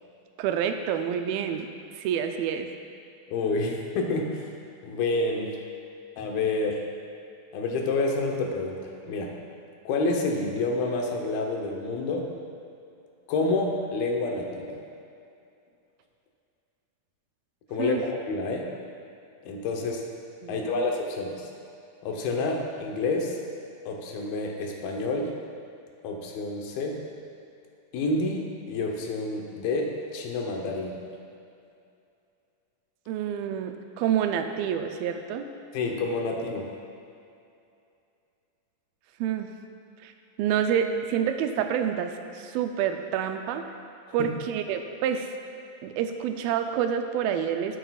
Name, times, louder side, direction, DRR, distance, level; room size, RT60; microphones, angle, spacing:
voice 1, 0.4-1.7 2.0-2.7 17.8-18.0 20.4-20.8 33.1-35.5 39.2-39.5 40.0-40.1 40.4-43.6 44.1-45.3 45.8-47.8, right 8 dB, 85° right, 6 dB, 2.4 m, -28 dB
voice 2, 3.3-4.5 4.8-5.5 6.2-6.8 7.5-9.3 9.9-12.3 13.3-14.8 17.7-18.7 19.4-20.0 20.5-21.5 22.0-23.4 23.9-25.3 26.0-27.0 27.9-31.0 35.7-36.7 44.2-44.3, left 3 dB, 90° left, 1 dB, 2.8 m, -28 dB
13.0 x 8.3 x 2.4 m, 2.6 s
omnidirectional pair, 4.2 m